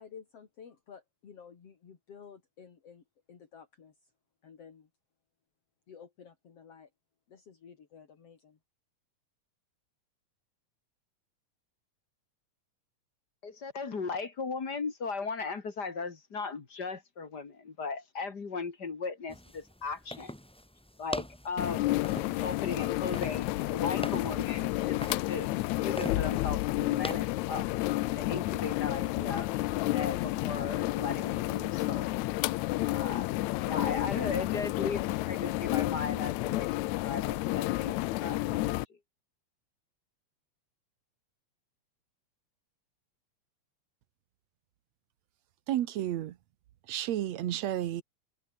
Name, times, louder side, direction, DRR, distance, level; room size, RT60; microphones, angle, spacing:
voice 1, 0.0-4.1 4.4-4.9 5.9-6.9 7.3-8.6, left 7 dB, 55° left, 3.7 m, -52 dB
voice 2, 13.4-20.3 21.0-21.9 22.4-25.5 25.8-27.6 28.1-29.5 29.9-32.1 32.8-33.3 33.6-36.7 37.0-39.0, left 4 dB, 35° left, 2.4 m, -37 dB
sound 1, 19.3-28.3, equal, 5° left, 0.8 m, -44 dB
sound 2, 21.6-38.9, left 18 dB, 85° left, 2.0 m, -31 dB
voice 3, 45.7-46.4 46.9-48.0, right 12 dB, 70° right, 2.2 m, -31 dB
omnidirectional pair, 3.3 m